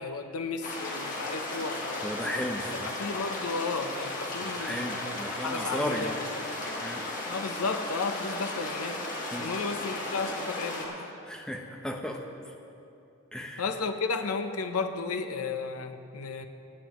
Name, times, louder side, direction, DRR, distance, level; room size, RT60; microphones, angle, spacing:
voice 1, 0.0-2.1 2.8-5.1 5.4-6.4 7.3-9.0 9.3-11.1 13.6-16.5, left 4 dB, 85° left, 8 dB, 0.8 m, -33 dB
sound 1, 0.6-10.9, left 2 dB, 40° left, 1.8 m, -35 dB
voice 2, 2.0-3.0 4.4-6.1 6.8-7.0 9.1-9.5 11.3-12.2 13.3-13.6, equal, 5° left, 2 dB, 0.7 m, -35 dB
23.5 x 9.4 x 3.1 m, 2.7 s
head